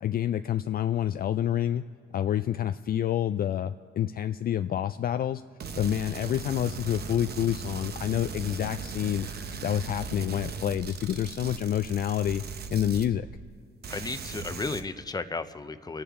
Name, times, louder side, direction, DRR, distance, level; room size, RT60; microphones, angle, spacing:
voice 1, 0.0-1.8 2.1-5.4 5.8-9.3 9.6-12.4 12.7-13.3, left 11 dB, 50° left, 10 dB, 0.4 m, -28 dB
sound 1, 5.6-13.6 13.8-14.8, right 5 dB, 55° right, 0.9 m, -38 dB
voice 2, 13.9-16.0, left 3 dB, 20° left, 10 dB, 0.7 m, -34 dB
30.0 x 10.0 x 3.7 m, 2.1 s
cardioid pair, 90°, 20 cm